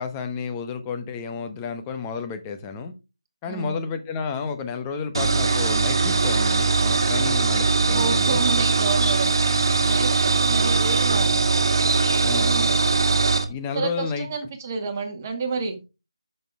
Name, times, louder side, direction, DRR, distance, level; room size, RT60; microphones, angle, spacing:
voice 1, 0.0-2.9 3.4-8.4 12.2-12.6 13.5-14.3, left 5 dB, 15° left, 1.0 m, -31 dB
voice 2, 3.5-3.8 7.9-9.3 9.8-11.4 12.3-12.8 13.7-15.8, right 4 dB, 25° right, 2.0 m, -30 dB
sound 1, 5.1-13.4, right 4 dB, 55° right, 1.8 m, -21 dB
10.5 x 6.7 x 3.6 m
figure-of-eight pair, 160°, 3 cm